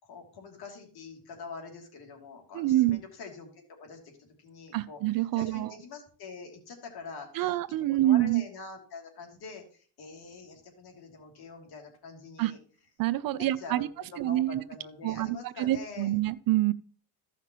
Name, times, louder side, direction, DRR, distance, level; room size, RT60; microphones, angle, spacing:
voice 1, 0.0-12.6 13.4-16.1, left 4 dB, 55° left, 2 dB, 2.9 m, -45 dB
voice 2, 2.5-3.0 4.7-5.7 7.3-8.4 12.4-12.5 13.0-13.9 14.2-14.6 15.0-16.7, right 15 dB, 50° right, 17 dB, 0.6 m, -26 dB
15.0 x 5.9 x 3.0 m, 0.43 s
supercardioid pair, 90°, 44 cm